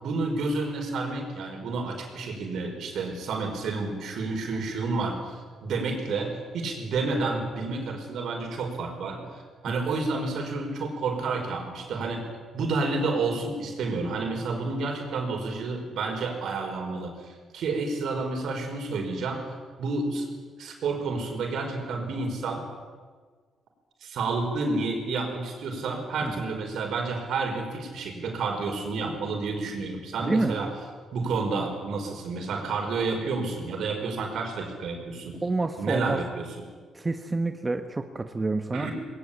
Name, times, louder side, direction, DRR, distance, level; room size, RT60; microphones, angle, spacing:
voice 1, 0.0-12.2 12.5-19.4 19.8-20.3 20.6-22.6 24.0-30.7 31.1-35.4 35.8-36.5 38.7-38.9, right 3 dB, 70° right, 3 dB, 5.1 m, -30 dB
voice 2, 30.2-30.6 35.4-36.2 36.9-38.9, right 3 dB, 20° right, 7 dB, 1.2 m, -28 dB
20.0 x 19.5 x 8.7 m, 1.5 s
cardioid pair, 90°, 0 cm